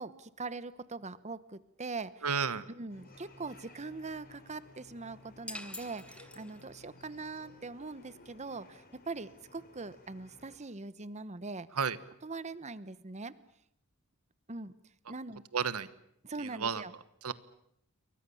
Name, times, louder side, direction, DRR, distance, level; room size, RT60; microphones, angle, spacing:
voice 1, 0.0-2.2 2.8-11.7 12.2-13.3 14.5-14.7 15.1-15.4 16.2-16.9, right 3 dB, 30° right, 16 dB, 1.0 m, -42 dB
voice 2, 2.2-2.6 11.7-12.0 15.5-15.9 16.4-16.8 17.2-17.3, right 6 dB, 85° right, 15 dB, 1.3 m, -32 dB
sound 1, 2.9-10.6, left 2 dB, 45° left, 4.4 m, -57 dB
sound 2, 5.5-6.9, left 2 dB, 5° left, 1.1 m, -46 dB
28.5 x 23.0 x 7.1 m, 0.76 s
head